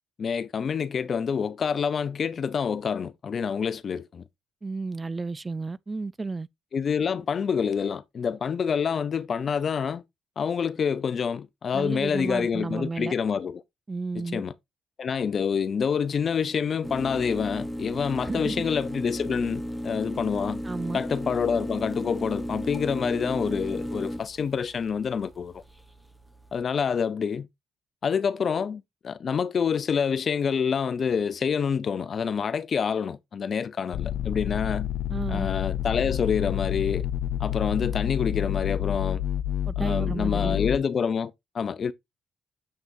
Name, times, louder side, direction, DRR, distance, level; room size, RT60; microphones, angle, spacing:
voice 1, 0.2-4.2 6.7-10.0 10.4-13.6 14.2-14.5 15.0-20.6 20.9-25.6 26.5-27.5 28.0-34.9 35.3-37.1 37.4-39.2 39.8-41.9, left 6 dB, 50° left, 0.7 m, -27 dB
voice 2, 4.6-6.5 11.7-13.1 13.9-14.4 18.2-18.6 20.6-21.0 35.1-35.5 39.7-40.6, right 3 dB, 25° right, 0.4 m, -32 dB
sound 1, 16.8-26.6, equal, ahead, 1.1 m, -35 dB
sound 2, 33.9-40.8, left 11 dB, 90° left, 0.5 m, -29 dB
7.8 x 5.6 x 2.7 m
cardioid pair, 90°, 0 cm